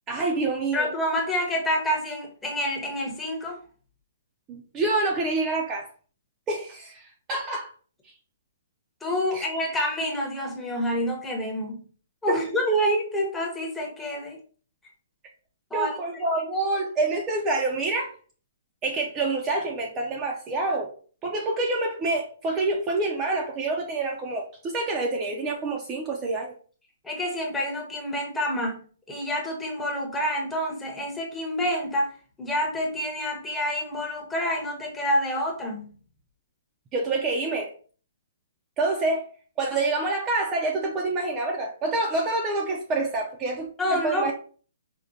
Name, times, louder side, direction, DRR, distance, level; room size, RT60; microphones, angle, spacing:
voice 1, 0.1-0.9 4.5-5.9 6.5-7.7 9.3-9.5 12.3-12.4 15.7-18.1 18.8-20.9 21.2-26.5 36.9-37.7 38.8-39.3 39.6-44.3, right 2 dB, 20° right, 1 dB, 0.4 m, -27 dB
voice 2, 0.7-3.6 9.0-11.8 12.2-14.4 15.7-16.2 27.0-28.8 29.1-32.1 32.4-35.9 43.8-44.3, equal, 5° left, -1 dB, 0.7 m, -28 dB
4.8 x 2.1 x 2.7 m, 0.42 s
hypercardioid pair, 160°, 0 cm